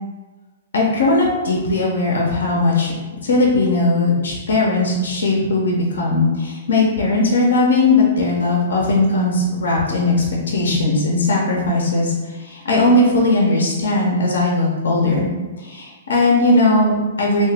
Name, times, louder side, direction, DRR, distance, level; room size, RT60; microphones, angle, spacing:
voice 1, 0.7-2.9 3.2-17.5, left 2 dB, 70° left, -2 dB, 0.7 m, -18 dB
3.1 x 2.8 x 3.3 m, 1.2 s
figure-of-eight pair, 115°, 0 cm